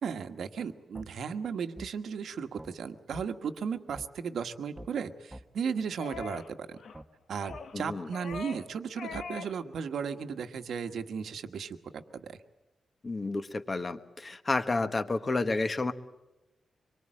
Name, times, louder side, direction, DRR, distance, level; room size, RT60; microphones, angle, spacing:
voice 1, 0.0-6.8 7.3-12.4, right 6 dB, 80° right, 8 dB, 1.4 m, -35 dB
sound 1, 0.9-1.1 1.8-1.9 2.6-2.7 3.1-3.3 3.9-4.1 4.8-4.9 5.3-5.5 6.1-6.3 6.9-7.1 7.5-7.6 8.3-8.4 9.1-9.3, right 1 dB, 10° right, 1.1 m, -45 dB
sound 2, 6.0-6.5 6.8-7.0 7.4-7.8 8.1-8.7 9.0-9.6 9.9-10.0, left 5 dB, 75° left, 1.2 m, -42 dB
voice 2, 7.7-8.1 13.0-15.9, left 3 dB, 30° left, 10 dB, 1.3 m, -30 dB
25.5 x 23.0 x 7.6 m, 1.0 s
wide cardioid pair, 140°, 0 cm